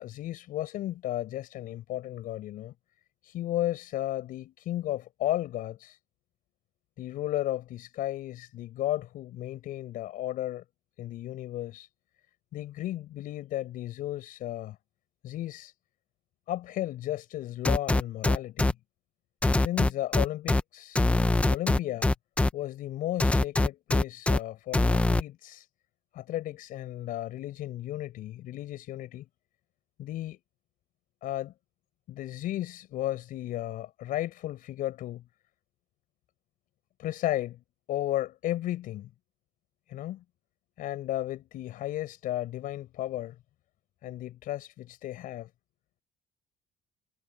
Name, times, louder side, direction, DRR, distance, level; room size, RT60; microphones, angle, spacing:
voice 1, 0.0-2.7 3.2-6.0 7.0-10.6 11.0-11.9 12.5-14.8 15.2-15.7 16.5-18.7 19.6-21.0 21.5-22.1 22.5-25.7 26.1-29.3 30.0-30.4 31.2-31.5 32.1-35.2 37.0-37.6 37.9-39.1 39.9-40.2 40.8-43.4 44.0-45.5, left 14 dB, 65° left, 6.5 m, -34 dB
sound 1, 17.6-18.7 19.4-20.6 21.0-22.5 23.2-24.4 24.7-25.2, left 2 dB, 10° left, 0.6 m, -23 dB
cardioid pair, 160°, 15 cm